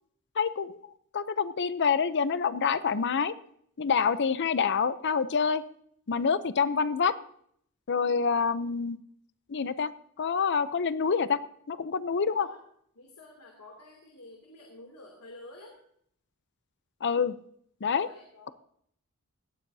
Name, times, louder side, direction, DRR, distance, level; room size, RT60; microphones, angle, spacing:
voice 1, 0.4-0.8 1.1-3.3 3.8-5.6 6.1-7.2 7.9-9.0 9.5-9.9 10.2-11.4 11.7-12.5 17.0-17.3 17.8-18.1, left 6 dB, 50° left, 14 dB, 0.6 m, -27 dB
voice 2, 12.3-12.6 12.9-15.8 17.9-18.5, left 2 dB, 80° left, 0 dB, 2.8 m, -50 dB
18.0 x 14.5 x 2.7 m, 0.66 s
head